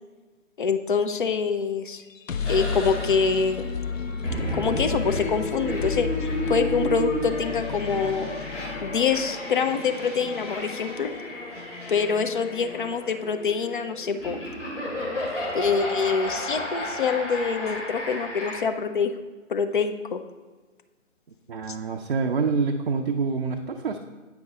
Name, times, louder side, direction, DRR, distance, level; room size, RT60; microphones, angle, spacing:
voice 1, 0.6-2.0 2.5-3.7 4.5-8.3 8.8-11.1 11.9-14.4 15.5-19.1 19.5-20.2 21.7-21.8, left 5 dB, 40° left, 8 dB, 0.5 m, -25 dB
sound 1, 2.0-15.8, left 5 dB, 85° left, 0.6 m, -35 dB
sound 2, 2.4-18.6, equal, 70° left, 2.4 m, -33 dB
voice 2, 21.5-24.0, right 4 dB, 45° right, 3 dB, 0.4 m, -26 dB
8.9 x 5.2 x 3.6 m, 1.3 s
figure-of-eight pair, 140°, 38 cm